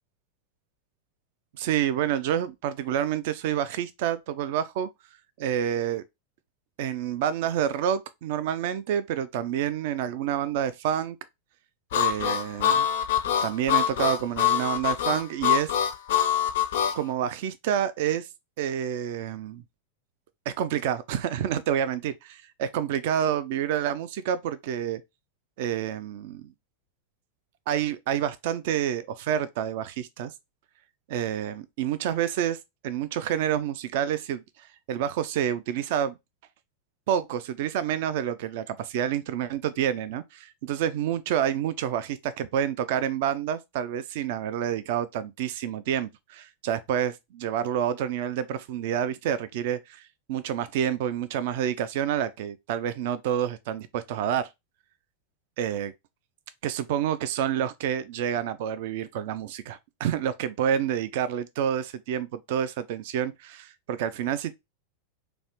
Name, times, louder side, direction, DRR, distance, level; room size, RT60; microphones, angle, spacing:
voice 1, 1.6-4.9 5.4-6.0 6.8-11.2 11.9-12.9 13.4-15.7 16.9-18.3 18.6-19.6 20.5-25.0 25.6-26.5 27.7-30.3 31.1-32.6 32.8-34.4 34.9-36.1 37.1-50.0 50.3-54.5 55.6-55.9 56.6-64.5, right 9 dB, 50° right, 0.3 m, -28 dB
Harmonica, 11.9-17.0, left 9 dB, 55° left, 0.4 m, -24 dB
3.1 x 2.5 x 2.8 m
figure-of-eight pair, 90°, 0 cm